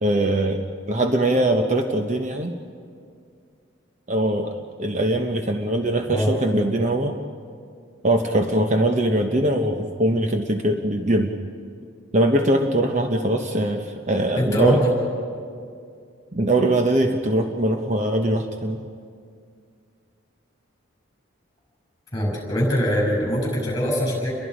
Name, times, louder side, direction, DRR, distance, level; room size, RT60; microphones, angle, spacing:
voice 1, 0.0-2.5 4.1-7.2 8.0-11.3 12.1-14.8 16.3-18.8, right 1 dB, 35° right, 4 dB, 0.9 m, -22 dB
voice 2, 14.3-14.9 22.1-24.3, equal, 20° left, -2 dB, 7.9 m, -22 dB
30.0 x 22.5 x 5.1 m, 2.3 s
head